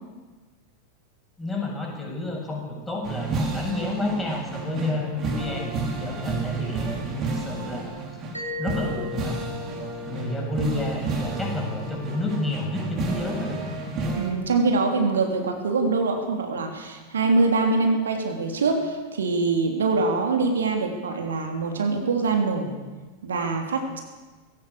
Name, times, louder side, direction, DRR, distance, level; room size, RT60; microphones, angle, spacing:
voice 1, 1.4-8.2 8.6-9.6 10.0-13.6, left 2 dB, 10° left, -1 dB, 7.3 m, -30 dB
sound 1, 3.0-14.3, right 3 dB, 30° right, 4.9 m, -31 dB
Mallet percussion, 8.3-13.0, left 3 dB, 85° right, 4.4 m, -39 dB
voice 2, 14.1-22.7 23.2-24.0, right 3 dB, 65° right, 3 dB, 3.2 m, -24 dB
20.0 x 16.5 x 8.5 m, 1.3 s
figure-of-eight pair, 90°, 0 cm